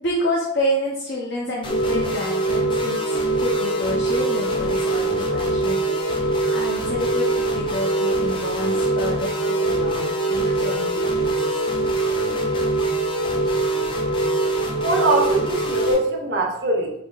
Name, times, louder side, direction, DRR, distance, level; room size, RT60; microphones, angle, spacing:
voice 1, 0.0-11.5, left 1 dB, 70° left, -3 dB, 0.6 m, -29 dB
sound 1, 1.6-16.0, left 2 dB, 25° left, 0.4 m, -32 dB
sound 2, 1.7-15.9, right 2 dB, 45° left, 1.2 m, -23 dB
voice 2, 14.8-16.9, right 2 dB, 60° right, 1 dB, 0.5 m, -22 dB
4.1 x 2.7 x 2.3 m, 0.80 s
head